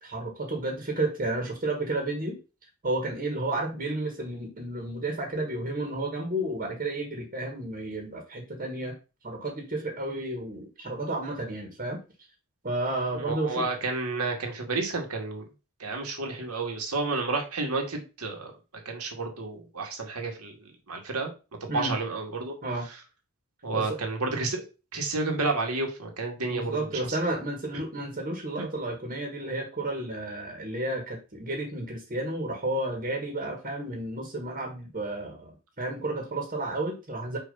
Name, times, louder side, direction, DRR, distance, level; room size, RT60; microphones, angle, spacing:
voice 1, 0.0-2.4 2.8-8.9 9.2-12.0 12.6-13.6 21.7-21.9 22.6-22.9 23.7-24.0 26.4-37.4, right 2 dB, 40° right, 2 dB, 1.7 m, -32 dB
voice 2, 13.1-15.5 15.8-18.5 18.9-21.3 21.6-22.6 23.6-24.6 24.9-27.2 28.6-28.7, right 3 dB, 85° right, 2 dB, 2.1 m, -31 dB
6.4 x 3.1 x 5.5 m, 0.31 s
head